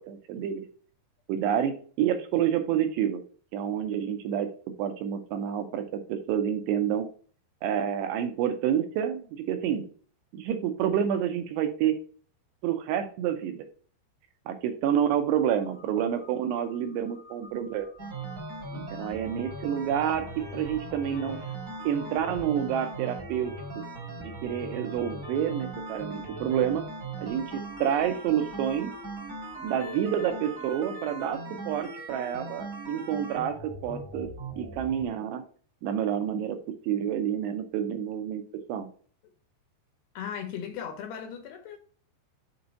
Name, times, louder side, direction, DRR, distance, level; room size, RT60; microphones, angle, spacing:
voice 1, 0.1-0.7 1.4-3.2 3.5-4.5 4.8-7.1 7.6-9.2 9.5-9.9 10.3-12.0 12.6-13.7 14.5-17.9 18.7-20.3 20.5-21.4 21.8-23.5 24.2-26.9 27.2-28.9 29.6-34.3 34.6-35.4 35.8-36.6 36.8-38.4 38.7-38.9, right 9 dB, 80° right, 2.7 m, -28 dB
Crow, 14.9-30.4, left 3 dB, 45° left, 0.8 m, -54 dB
sound 1, 18.0-35.1, right 2 dB, 40° right, 1.2 m, -39 dB
voice 2, 40.2-41.8, left 8 dB, 80° left, 2.6 m, -37 dB
6.8 x 2.7 x 5.0 m
omnidirectional pair, 5.1 m